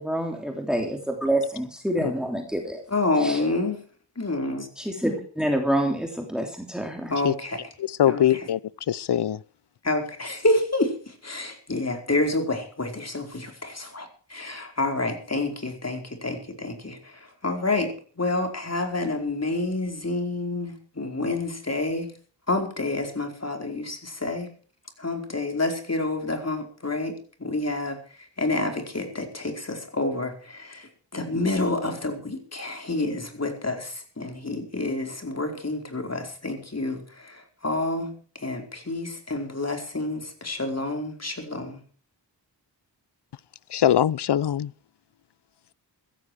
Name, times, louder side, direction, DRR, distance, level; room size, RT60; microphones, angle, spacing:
voice 1, 0.0-2.8 3.2-3.4 4.8-7.1, right 1 dB, ahead, 3.2 m, -27 dB
voice 2, 2.9-3.8 4.2-4.7 7.1-7.7 8.0-8.5 9.8-22.1 22.5-24.5 25.0-41.8, left 2 dB, 35° left, 4.7 m, -28 dB
voice 3, 8.0-8.6 8.9-9.4 43.7-44.7, left 10 dB, 70° left, 0.6 m, -21 dB
16.0 x 14.5 x 4.8 m
cardioid pair, 60°, 43 cm